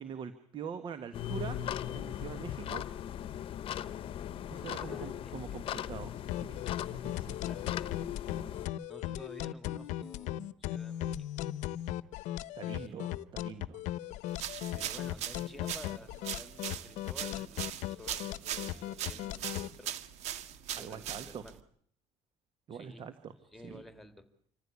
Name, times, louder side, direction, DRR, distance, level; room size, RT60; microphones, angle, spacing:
voice 1, 0.0-1.6 1.9-2.8 3.2-3.3 4.5-6.6 7.0-7.4 12.5-13.9 20.7-21.4 22.7-23.8, right 7 dB, 40° right, 11 dB, 1.6 m, -44 dB
sound 1, 1.1-8.7, left 10 dB, 45° left, 1.0 m, -39 dB
voice 2, 4.8-5.6 7.4-7.8 8.9-11.3 12.6-13.4 14.7-20.0 20.7-21.6 22.7-23.1 23.5-24.3, left 1 dB, ahead, 9 dB, 2.7 m, -52 dB
sound 2, 6.3-19.7, left 13 dB, 75° left, 0.8 m, -37 dB
sound 3, 14.3-21.6, right 10 dB, 65° right, 1.7 m, -40 dB
26.5 x 15.0 x 8.3 m, 0.63 s
cardioid pair, 150°, 12 cm